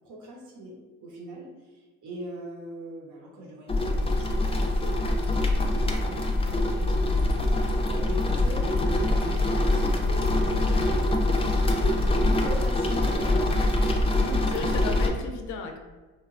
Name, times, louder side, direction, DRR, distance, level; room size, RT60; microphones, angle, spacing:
voice 1, 0.0-11.0 11.8-13.5, right 1 dB, 75° right, -3 dB, 0.8 m, -40 dB
sound 1, 3.7-15.1, left 2 dB, 20° left, 0.3 m, -24 dB
voice 2, 14.2-15.8, left 4 dB, 75° left, 4 dB, 0.5 m, -35 dB
3.0 x 2.1 x 2.4 m, 1.3 s
cardioid pair, 90°, 30 cm